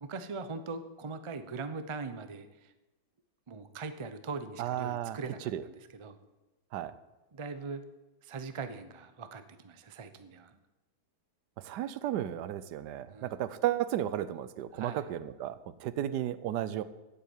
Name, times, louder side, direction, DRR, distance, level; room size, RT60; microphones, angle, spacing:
voice 1, 0.0-2.7 3.5-6.2 7.3-7.8 8.2-10.6 13.1-13.4 14.7-15.0, right 4 dB, 40° right, 10 dB, 0.4 m, -41 dB
voice 2, 4.6-5.2 5.5-5.6 6.7-6.9 11.6-16.8, right 12 dB, 80° right, 14 dB, 1.2 m, -33 dB
8.5 x 8.4 x 9.1 m, 1.1 s
omnidirectional pair, 1.8 m